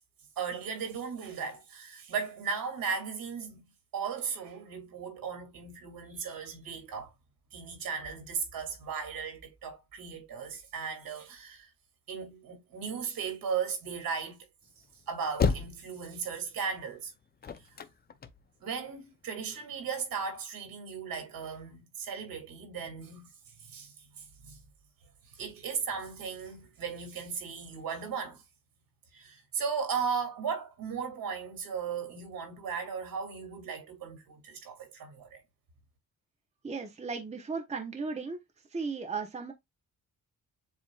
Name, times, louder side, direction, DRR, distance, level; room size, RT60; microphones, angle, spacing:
voice 1, 0.4-3.6 3.9-7.1 7.5-11.7 12.1-14.4 15.1-17.1 18.6-23.3 23.6-24.6 25.3-28.4 29.1-35.4, right 6 dB, 85° right, 2.6 m, -36 dB
sound 1, 14.7-18.9 19.4-20.4, left 6 dB, 30° left, 0.5 m, -33 dB
voice 2, 36.6-38.4 38.7-39.5, right 4 dB, 20° right, 0.8 m, -36 dB
7.4 x 2.9 x 2.3 m
wide cardioid pair, 155°, 34 cm